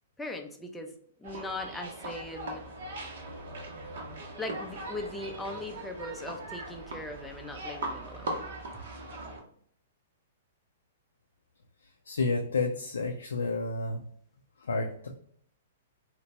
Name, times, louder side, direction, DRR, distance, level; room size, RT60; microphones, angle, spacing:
voice 1, 0.2-2.6 4.4-8.4, left 2 dB, 5° left, 3 dB, 0.4 m, -39 dB
sound 1, 1.2-9.4, right 2 dB, 60° right, 0.7 m, -40 dB
voice 2, 12.1-14.0 14.6-15.1, left 3 dB, 75° left, 2 dB, 0.4 m, -30 dB
2.9 x 2.1 x 2.7 m, 0.63 s
figure-of-eight pair, 110°, 0 cm